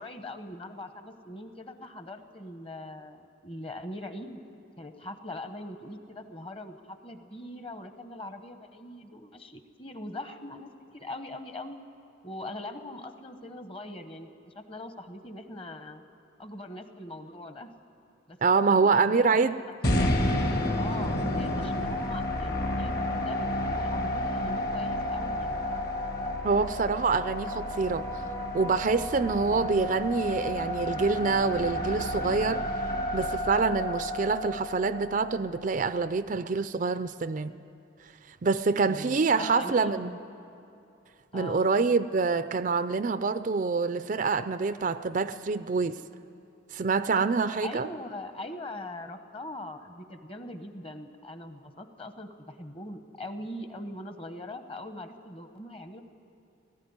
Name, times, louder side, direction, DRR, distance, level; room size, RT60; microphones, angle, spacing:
voice 1, 0.0-4.4 4.8-11.8 12.2-16.0 16.4-17.7 18.3-18.4 18.7-25.6 29.4-29.8 38.8-40.2 41.3-41.7 47.6-56.0, left 1 dB, 30° left, 8 dB, 1.0 m, -41 dB
voice 2, 18.4-19.6 26.4-28.1 28.5-32.6 33.1-37.5 38.4-40.1 41.3-46.0 46.7-47.9, right 4 dB, 40° right, 12 dB, 0.4 m, -26 dB
sound 1, 19.8-36.0, left 1 dB, 50° left, 1.9 m, -31 dB
18.0 x 15.0 x 9.6 m, 2.7 s
head